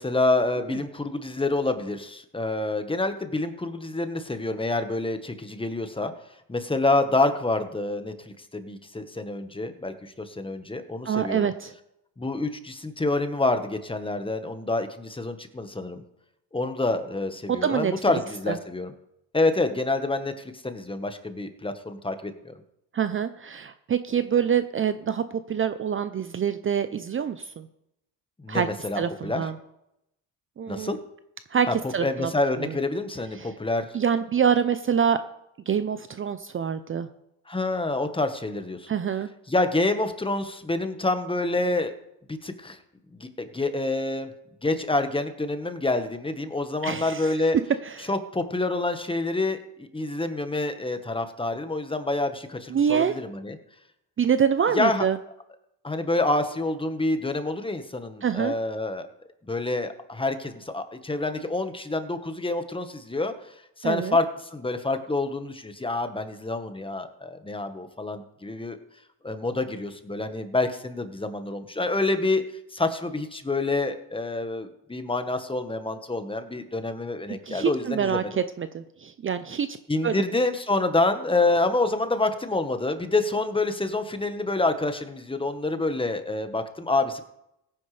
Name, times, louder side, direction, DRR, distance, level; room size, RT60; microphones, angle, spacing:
voice 1, 0.0-6.1 6.5-8.1 8.5-11.5 12.2-16.0 16.5-18.9 19.3-22.5 28.4-29.4 30.7-31.0 31.7-31.8 32.0-33.9 37.5-38.9 39.5-41.9 42.3-42.8 43.1-44.3 44.6-47.6 48.1-53.6 54.7-55.0 55.8-59.1 59.4-63.3 63.8-64.2 64.5-68.8 69.2-72.4 72.7-78.3 79.9-87.2, left 2 dB, 15° left, 8 dB, 1.4 m, -27 dB
voice 2, 11.0-11.7 17.5-18.2 18.5-18.6 22.9-27.7 28.5-28.7 29.0-29.5 30.6-31.0 31.5-32.3 32.6-32.8 33.4-33.5 33.9-35.2 35.7-37.1 38.9-39.3 46.8-47.3 47.8-48.1 52.7-53.1 54.2-55.2 58.2-58.5 63.8-64.2 77.5-79.7 80.0-80.2, right 7 dB, 30° right, 11 dB, 0.7 m, -26 dB
16.5 x 10.0 x 3.4 m, 0.82 s
supercardioid pair, 85°, 39 cm